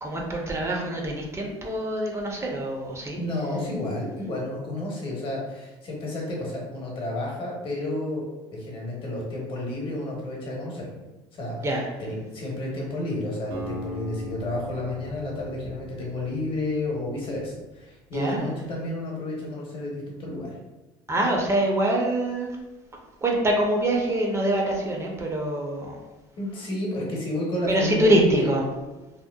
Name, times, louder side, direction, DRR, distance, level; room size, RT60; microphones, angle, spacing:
voice 1, 0.0-3.2 11.6-11.9 18.1-18.4 21.1-22.6 23.2-26.0 27.7-28.6, right 1 dB, 20° right, 0 dB, 0.5 m, -24 dB
voice 2, 3.2-8.3 8.5-10.9 11.3-11.7 12.0-20.6 26.4-28.5, left 1 dB, 45° left, -2 dB, 0.9 m, -31 dB
Acoustic guitar, 13.5-17.6, left 1 dB, 85° right, 0.7 m, -40 dB
2.7 x 2.0 x 2.2 m, 1.1 s
supercardioid pair, 100°, 13 cm